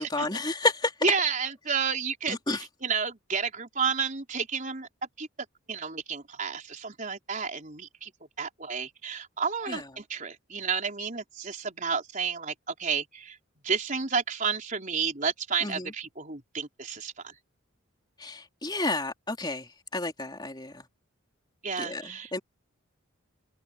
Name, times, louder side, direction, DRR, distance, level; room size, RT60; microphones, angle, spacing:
voice 1, 0.0-0.9 2.3-2.6 9.7-9.8 15.6-15.9 18.2-20.8 21.8-22.4, left 2 dB, 20° left, 3.8 m, -31 dB
voice 2, 1.0-4.9 5.2-5.3 5.7-8.1 8.4-13.4 13.6-17.3 21.6-22.3, right 5 dB, 35° right, 4.4 m, -31 dB
head